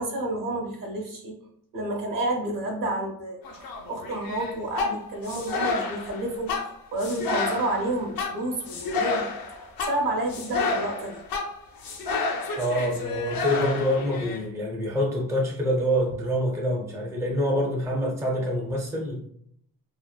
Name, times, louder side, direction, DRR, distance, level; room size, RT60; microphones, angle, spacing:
voice 1, 0.0-1.3 1.7-9.3 9.6-11.2, right 1 dB, 55° right, 1 dB, 0.8 m, -30 dB
sound 1, 3.4-14.4, left 4 dB, 65° left, 0.6 m, -30 dB
voice 2, 12.6-19.2, equal, 10° right, -2 dB, 0.5 m, -26 dB
2.8 x 2.1 x 2.2 m, 0.68 s
cardioid pair, 110°, 38 cm